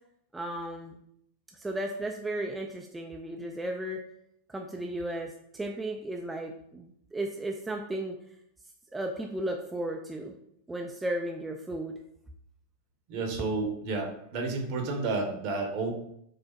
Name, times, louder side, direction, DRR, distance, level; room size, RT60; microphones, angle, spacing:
voice 1, 0.3-1.0 1.5-4.0 4.5-8.1 8.9-10.4 10.7-12.0, right 1 dB, 10° right, 1 dB, 0.3 m, -35 dB
voice 2, 13.1-15.9, right 3 dB, 45° right, 2 dB, 0.8 m, -31 dB
4.9 x 2.0 x 2.9 m, 0.72 s
figure-of-eight pair, 90°, 0 cm